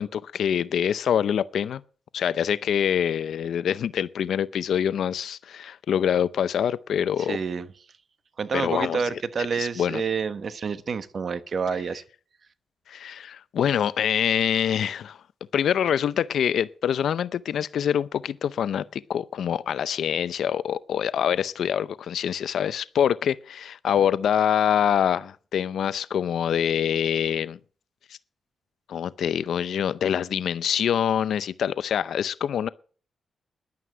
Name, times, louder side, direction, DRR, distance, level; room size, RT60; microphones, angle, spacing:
voice 1, 0.0-1.8 2.1-7.4 8.5-9.1 9.5-10.0 12.9-15.2 15.5-27.6 28.1-28.2 28.9-32.7, left 9 dB, 80° left, 0.5 m, -25 dB
voice 2, 7.3-7.7 8.4-12.0, right 5 dB, 55° right, 1.1 m, -28 dB
11.0 x 9.4 x 7.6 m
cardioid pair, 90°, 0 cm